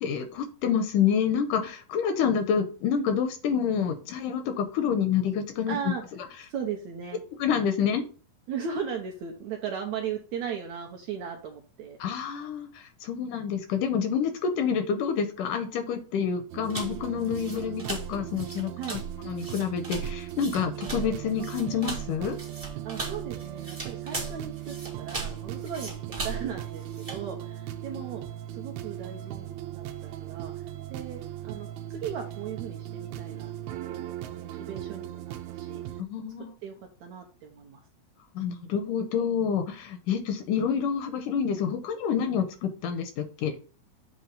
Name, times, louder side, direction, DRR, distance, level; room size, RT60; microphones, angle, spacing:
voice 1, 0.0-5.8 7.4-8.0 12.0-19.0 19.3-22.4 36.0-36.5 38.4-43.5, left 7 dB, 80° left, 7 dB, 2.0 m, -28 dB
voice 2, 5.7-6.0 6.5-7.2 8.5-12.0 18.8-19.0 22.8-28.2 28.5-36.0 36.6-36.7 37.0-37.8, right 7 dB, 70° right, 2 dB, 1.7 m, -37 dB
sound 1, 16.5-36.0, right 13 dB, 85° right, 2.4 m, -38 dB
sound 2, 16.7-27.2, right 3 dB, 35° right, 0.6 m, -38 dB
7.6 x 3.0 x 5.2 m, 0.39 s
omnidirectional pair, 4.0 m